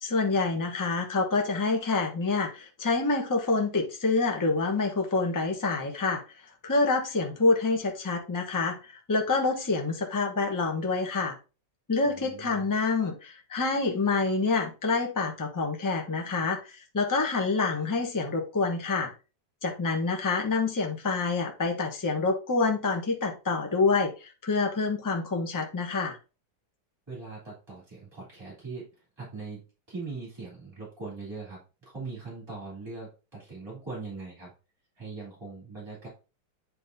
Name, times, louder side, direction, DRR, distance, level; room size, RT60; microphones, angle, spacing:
voice 1, 0.0-6.2 6.6-11.4 11.9-19.1 19.6-26.2, left 3 dB, 15° left, 3 dB, 0.7 m, -27 dB
voice 2, 12.0-12.7 27.1-28.9 29.2-34.5 35.0-36.1, right 4 dB, 15° right, -4 dB, 3.2 m, -41 dB
9.5 x 4.6 x 2.7 m, 0.31 s
omnidirectional pair, 2.1 m